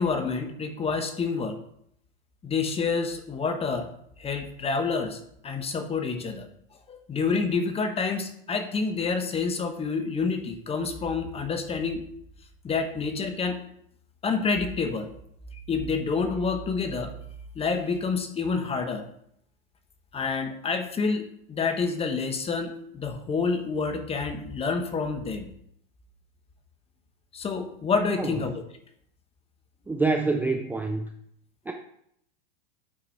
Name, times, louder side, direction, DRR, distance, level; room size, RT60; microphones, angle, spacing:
voice 1, 0.0-1.6 2.4-3.9 4.2-6.5 6.9-12.1 12.6-13.6 14.2-15.1 15.5-17.1 17.5-19.0 20.1-25.5 27.3-28.5, left 4 dB, 20° left, 7 dB, 1.1 m, -28 dB
voice 2, 29.9-31.1 31.7-31.8, right 3 dB, 5° right, 3 dB, 0.5 m, -26 dB
8.5 x 4.7 x 4.6 m, 0.71 s
hypercardioid pair, 110°, 29 cm